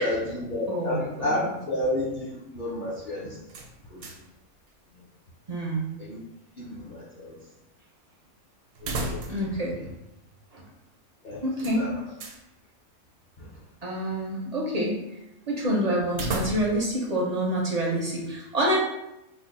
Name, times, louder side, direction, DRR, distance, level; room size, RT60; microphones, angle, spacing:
voice 1, 0.0-3.4 3.9-4.1 6.0-6.2 6.6-7.4 8.8-9.3 9.6-9.7 11.2-11.9 13.4-13.5, left 1 dB, 50° left, -6 dB, 0.6 m, -31 dB
voice 2, 0.7-1.5 5.5-5.9 9.3-9.8 10.5-10.6 11.4-11.9 13.8-15.2 15.5-18.8, right 1 dB, 50° right, -3 dB, 0.4 m, -27 dB
sound 1, 3.5-4.4 4.7-4.8 8.7-9.6 9.9-10.0 11.6-12.4 16.1-16.9, right 2 dB, 80° right, 1.0 m, -34 dB
3.3 x 2.1 x 3.8 m, 0.89 s
omnidirectional pair, 1.3 m